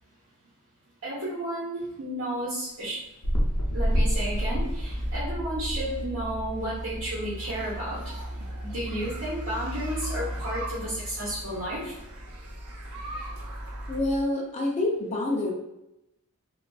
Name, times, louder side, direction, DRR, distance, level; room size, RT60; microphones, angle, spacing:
voice 1, 1.0-3.0 3.7-12.1, right 1 dB, 65° right, -9 dB, 0.9 m, -33 dB
Mechanical fan, 2.9-14.2, equal, 5° left, 1.2 m, -37 dB
sound 1, 3.2-7.0 7.6-7.7, equal, 75° left, 0.6 m, -28 dB
sound 2, 7.4-14.0, right 2 dB, 90° right, 0.6 m, -43 dB
voice 2, 13.9-15.5, left 2 dB, 30° left, -2 dB, 0.4 m, -27 dB
2.5 x 2.3 x 2.2 m, 0.87 s
head